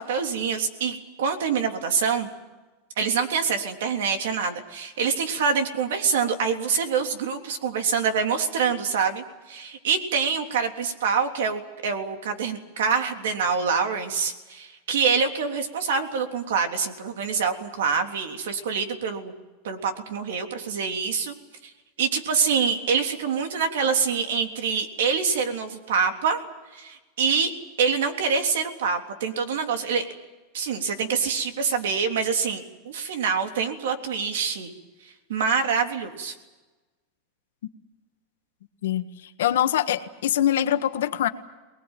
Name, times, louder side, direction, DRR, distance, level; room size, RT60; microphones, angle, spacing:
voice 1, 0.0-2.3 3.0-19.3 19.6-21.3 21.6-21.7 22.0-26.4 26.7-27.5 27.8-30.0 30.5-34.7 35.3-36.3, right 6 dB, 85° right, 5 dB, 3.3 m, -25 dB
voice 2, 39.4-41.3, left 11 dB, 90° left, 8 dB, 1.6 m, -23 dB
24.5 x 20.5 x 9.1 m, 1.1 s
supercardioid pair, 145°, 0 cm